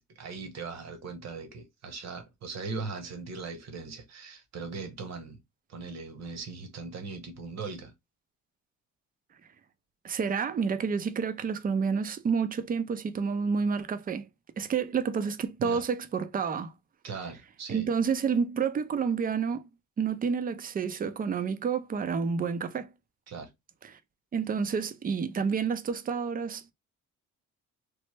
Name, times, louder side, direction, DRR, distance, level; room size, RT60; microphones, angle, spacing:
voice 1, 0.1-5.4 5.7-7.9 15.6-15.8 17.0-17.9 23.3-23.5, right 4 dB, 60° right, 1.0 m, -39 dB
voice 2, 10.0-14.2 14.6-16.7 17.7-19.6 20.0-22.9 24.3-26.7, right 6 dB, 30° right, 0.4 m, -29 dB
3.2 x 2.0 x 3.2 m
cardioid pair, 90°, 30 cm